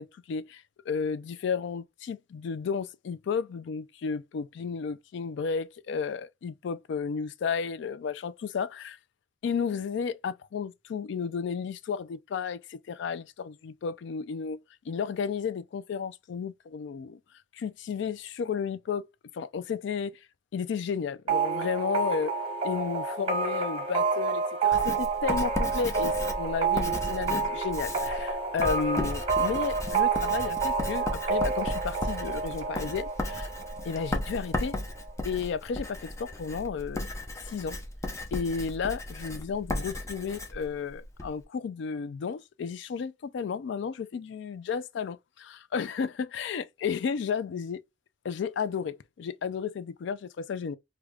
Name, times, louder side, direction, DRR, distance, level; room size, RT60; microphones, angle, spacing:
voice 1, 0.0-9.0 9.4-14.6 14.9-17.2 17.5-19.1 19.3-20.1 20.5-22.3 22.6-33.5 33.8-34.8 35.2-37.1 37.4-37.8 38.3-47.8 48.2-50.8, left 6 dB, 65° left, 0.3 m, -33 dB
sound 1, 21.3-34.8, right 5 dB, 30° right, 0.9 m, -29 dB
Writing, 24.7-41.3, left 1 dB, 15° left, 0.6 m, -35 dB
4.8 x 2.2 x 2.3 m
head